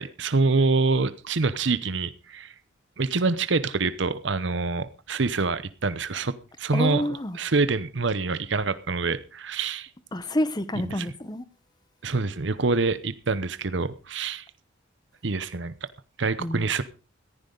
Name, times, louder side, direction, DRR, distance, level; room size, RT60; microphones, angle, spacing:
voice 1, 0.0-2.5 3.0-7.0 7.3-9.9 10.9-11.1 12.0-14.4 15.2-15.7 16.2-16.8, right 3 dB, 60° right, 0.8 m, -26 dB
voice 2, 6.7-7.4 10.1-11.4 16.4-16.7, left 1 dB, 20° left, 1.0 m, -28 dB
15.5 x 14.5 x 3.9 m
head